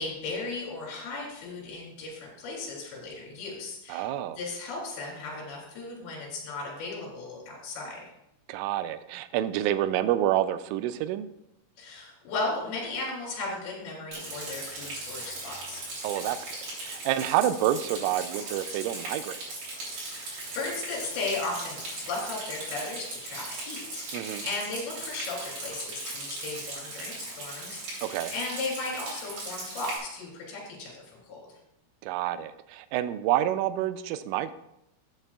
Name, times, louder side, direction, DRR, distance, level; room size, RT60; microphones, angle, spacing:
voice 1, 0.0-8.0 11.8-15.8 19.9-30.9 31.2-31.4, left 3 dB, 55° left, 4.6 m, -36 dB
voice 2, 3.9-4.4 8.5-11.3 16.0-16.4 16.8-19.4 24.1-24.5 28.0-28.3 32.0-34.5, right 12 dB, 85° right, 3.1 m, -28 dB
Rain, 14.1-30.0, right 2 dB, 50° right, 4.8 m, -38 dB
13.0 x 8.9 x 2.4 m
omnidirectional pair, 5.7 m